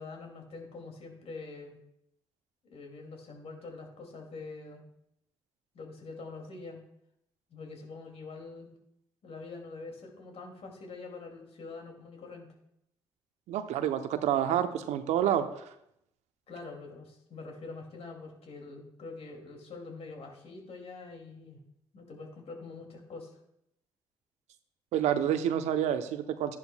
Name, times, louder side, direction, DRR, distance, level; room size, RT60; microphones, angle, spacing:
voice 1, 0.0-1.8 2.6-4.8 5.7-6.8 7.5-8.7 9.2-12.5 16.5-21.6 21.9-23.4, left 3 dB, 55° left, 2 dB, 2.4 m, -45 dB
voice 2, 13.5-15.4 24.9-26.6, right 10 dB, 70° right, 10 dB, 0.7 m, -28 dB
12.5 x 10.5 x 2.3 m, 0.77 s
hypercardioid pair, 45°, 12 cm